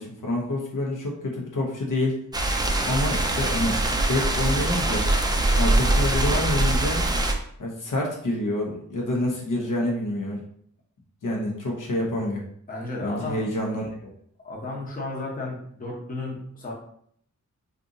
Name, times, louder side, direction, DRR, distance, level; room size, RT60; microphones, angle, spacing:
voice 1, 0.0-2.2 2.8-5.1 5.6-7.0 7.6-10.4 11.2-12.4 13.0-13.9, left 1 dB, 80° left, -2 dB, 0.9 m, -27 dB
sound 1, 2.3-7.3, right 2 dB, 15° right, 0.3 m, -23 dB
voice 2, 12.7-13.5 14.4-16.7, left 2 dB, 25° left, -3 dB, 0.8 m, -33 dB
2.7 x 2.6 x 3.6 m, 0.66 s
wide cardioid pair, 145°, 31 cm